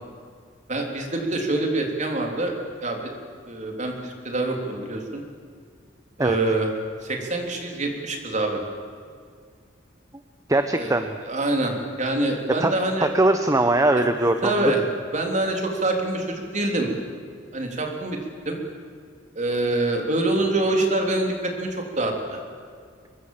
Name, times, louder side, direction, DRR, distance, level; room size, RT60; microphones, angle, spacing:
voice 1, 0.7-2.5 2.8-3.1 3.5-5.2 6.2-6.7 7.0-8.6 10.7-11.0 11.3-13.1 14.4-14.8 15.1-16.9 17.5-18.2 18.5-18.6 19.4-21.7 22.0-22.4, right 2 dB, 40° right, 2 dB, 3.6 m, -25 dB
voice 2, 10.5-11.1 12.6-12.7 13.0-14.7, right 2 dB, 15° right, 7 dB, 0.9 m, -21 dB
24.5 x 22.0 x 7.5 m, 2.1 s
head